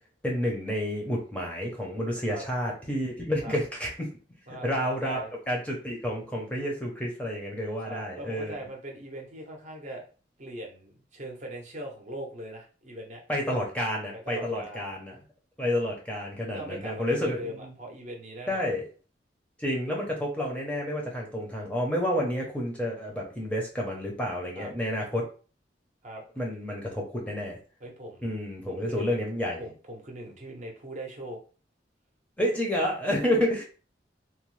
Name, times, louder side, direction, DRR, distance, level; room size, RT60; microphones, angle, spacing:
voice 1, 0.2-4.1 4.6-5.2 5.5-8.5 13.3-15.1 15.6-17.4 18.5-18.8 19.6-25.2 26.4-27.6 28.2-29.6 32.4-33.6, equal, 5° left, -2 dB, 0.6 m, -30 dB
voice 2, 4.5-5.3 7.8-10.0 10.4-13.2 14.1-15.0 16.5-18.7 24.6-24.7 26.0-26.2 27.8-28.4 28.7-29.2 29.6-31.4 33.1-33.4, right 1 dB, 40° right, 1 dB, 0.7 m, -41 dB
3.0 x 2.0 x 3.1 m, 0.37 s
head